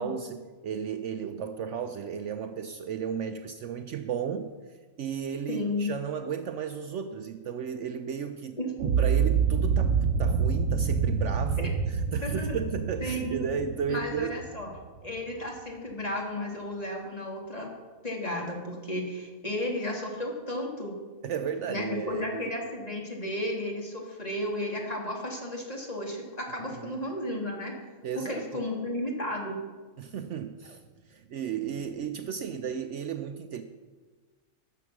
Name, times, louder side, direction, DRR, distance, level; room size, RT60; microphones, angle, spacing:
voice 1, 0.0-4.5 5.0-8.6 9.0-14.4 21.2-22.5 26.7-27.0 28.0-28.6 30.0-33.6, right 7 dB, 65° right, 8 dB, 0.9 m, -34 dB
voice 2, 5.5-5.9 8.6-8.9 12.2-12.5 13.0-13.5 13.9-14.7 15.0-17.7 18.0-20.9 21.7-27.7 28.2-29.6, left 1 dB, 25° left, -1 dB, 2.3 m, -33 dB
sound 1, 8.8-14.9, right 6 dB, 85° right, 1.1 m, -27 dB
13.0 x 8.0 x 6.0 m, 1.4 s
omnidirectional pair, 1.5 m